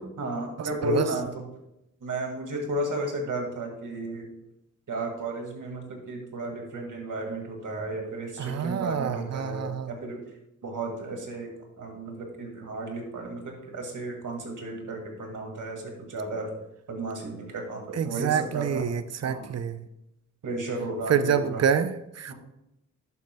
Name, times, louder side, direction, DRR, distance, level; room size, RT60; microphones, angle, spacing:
voice 1, 0.0-1.5 2.0-4.3 4.9-10.2 10.6-16.5 16.9-18.9 19.2-19.5 20.4-21.6 22.3-22.4, right 2 dB, 70° right, 2 dB, 2.0 m, -33 dB
voice 2, 0.6-1.1 8.4-9.9 17.9-19.9 21.1-22.3, right 7 dB, 55° right, 12 dB, 0.6 m, -27 dB
11.0 x 7.6 x 2.2 m, 0.85 s
wide cardioid pair, 85°, 32 cm